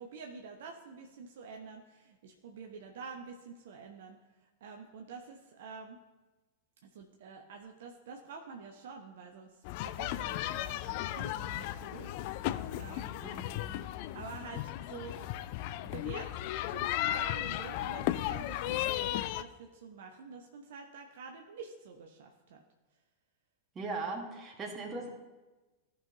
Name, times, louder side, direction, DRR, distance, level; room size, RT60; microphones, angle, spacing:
voice 1, 0.0-6.0 6.8-13.2 14.1-22.6, right 5 dB, 55° right, 3 dB, 0.8 m, -48 dB
sound 1, 9.6-19.4, left 14 dB, 45° left, 0.4 m, -35 dB
voice 2, 13.2-13.8 23.7-25.1, right 3 dB, 25° right, 2 dB, 1.7 m, -39 dB
15.0 x 5.5 x 2.9 m, 1.2 s
figure-of-eight pair, 90°, 0 cm